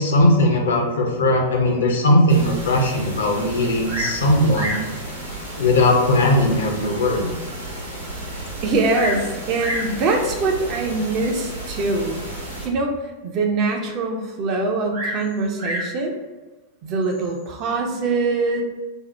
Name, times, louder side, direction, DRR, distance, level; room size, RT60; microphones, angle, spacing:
voice 1, 0.0-4.8 5.6-7.3, left 1 dB, 65° left, 1 dB, 0.5 m, -18 dB
sound 1, 2.3-12.7, right 1 dB, 85° right, 1.0 m, -33 dB
Bird vocalization bird call bird song, 3.8-4.2 4.5-4.9 5.8-5.9 6.5-6.6 7.1-7.2 7.4-7.5 8.6-9.3 9.6-9.9 10.9-11.3 14.9-15.9 17.0-17.5, equal, 60° right, 0.8 m, -29 dB
voice 2, 8.6-12.2 12.6-12.9 13.2-16.2 16.8-18.6, right 3 dB, 40° right, 2 dB, 0.5 m, -23 dB
2.7 x 2.0 x 3.1 m, 1.2 s
figure-of-eight pair, 90°, 0 cm